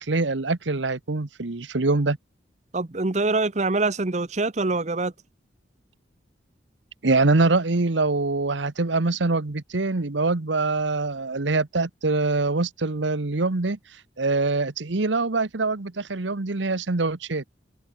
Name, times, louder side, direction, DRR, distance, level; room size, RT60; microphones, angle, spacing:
voice 1, 0.0-2.2 7.0-13.8 14.2-17.5, right 3 dB, 80° right, 1.1 m, -24 dB
voice 2, 2.7-5.1, right 3 dB, 40° right, 0.9 m, -24 dB
head